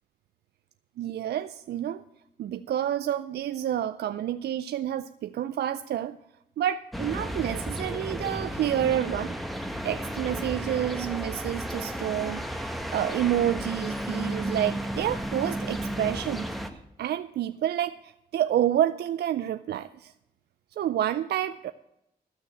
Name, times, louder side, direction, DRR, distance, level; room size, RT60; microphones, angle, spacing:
voice 1, 1.0-2.0 2.4-6.2 6.6-9.4 9.8-16.5 16.7-20.1 20.8-21.7, right 11 dB, 75° right, 12 dB, 0.4 m, -29 dB
sound 1, 6.9-16.7, equal, ahead, 1.3 m, -33 dB
13.0 x 6.3 x 7.8 m, 0.85 s
cardioid pair, 50°, 17 cm